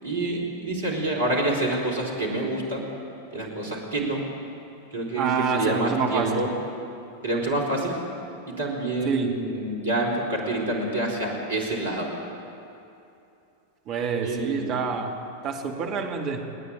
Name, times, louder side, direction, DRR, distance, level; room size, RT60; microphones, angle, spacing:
voice 1, 0.0-2.9 3.3-4.2 4.9-6.5 7.2-8.0 8.5-12.2 14.2-14.8, right 2 dB, 70° right, 0 dB, 4.4 m, -27 dB
voice 2, 5.2-6.4 9.0-9.3 13.9-15.1 15.4-16.4, right 5 dB, 40° right, 2 dB, 2.4 m, -27 dB
29.5 x 9.9 x 9.0 m, 2.7 s
figure-of-eight pair, 90°, 0 cm